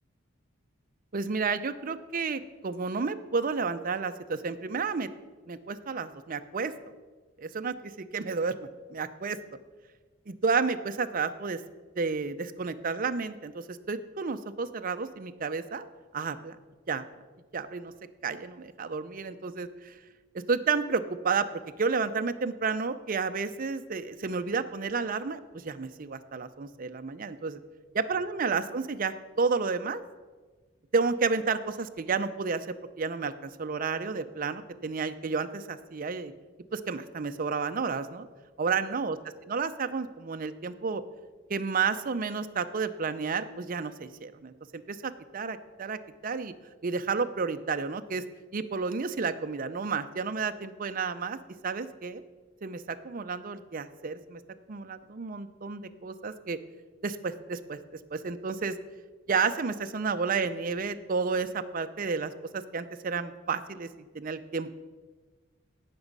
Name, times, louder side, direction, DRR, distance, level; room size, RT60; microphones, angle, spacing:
voice 1, 1.1-5.1 5.5-6.7 7.4-9.4 10.3-11.6 12.0-15.8 16.1-16.6 16.9-17.1 17.5-17.9 18.2-20.0 20.5-27.6 28.1-30.0 30.9-32.7 33.0-36.3 36.7-38.3 38.6-39.2 39.5-41.0 41.5-46.5 46.8-48.2 48.5-51.4 51.6-52.2 52.6-54.4 54.7-56.6 57.0-57.8 58.1-58.8 59.3-63.9 64.1-64.7, right 5 dB, 45° right, 10 dB, 0.6 m, -31 dB
17.0 x 6.1 x 5.4 m, 1.4 s
head